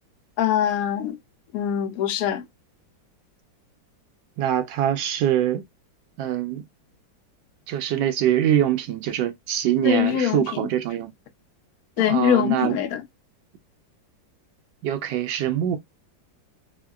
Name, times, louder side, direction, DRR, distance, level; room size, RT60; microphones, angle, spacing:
voice 1, 0.4-1.2 1.5-2.4 9.8-10.4 12.0-13.0, left 9 dB, 70° left, 0.9 m, -22 dB
voice 2, 4.4-5.6 6.2-6.6 7.7-11.1 12.0-12.8 14.8-15.8, right 11 dB, 75° right, 1.3 m, -23 dB
3.5 x 2.1 x 2.2 m
omnidirectional pair, 2.1 m